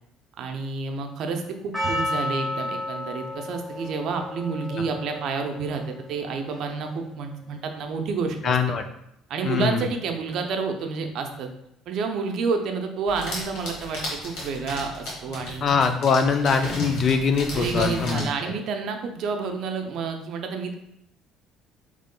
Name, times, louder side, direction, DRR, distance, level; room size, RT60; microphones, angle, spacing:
voice 1, 0.4-8.5 9.3-11.5 11.9-15.7 17.5-20.7, right 4 dB, 65° right, 4 dB, 0.5 m, -29 dB
Percussion, 1.7-7.0, left 1 dB, 5° left, 1.1 m, -32 dB
voice 2, 8.4-8.8 9.4-9.9 15.6-18.5, left 5 dB, 45° left, 7 dB, 0.4 m, -23 dB
sound 1, 13.1-18.3, left 2 dB, 85° left, 1.3 m, -34 dB
5.2 x 3.1 x 2.2 m, 0.78 s
cardioid pair, 105°, 0 cm